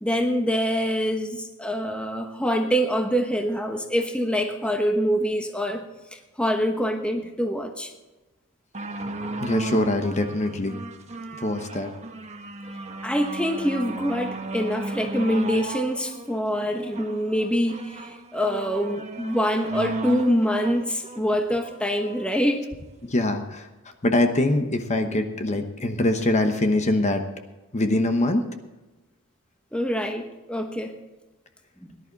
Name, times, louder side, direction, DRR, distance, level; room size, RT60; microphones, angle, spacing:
voice 1, 0.0-5.8 6.1-7.9 13.0-22.6 29.7-30.9, equal, 5° left, 4 dB, 1.0 m, -25 dB
sound 1, 8.7-22.3 23.1-23.2, right 2 dB, 35° right, 1.1 m, -35 dB
voice 2, 9.4-10.7 11.4-11.9 23.0-23.7 24.0-27.2 27.7-28.5, left 1 dB, 35° left, 6 dB, 1.1 m, -23 dB
18.0 x 11.0 x 4.1 m, 1.1 s
head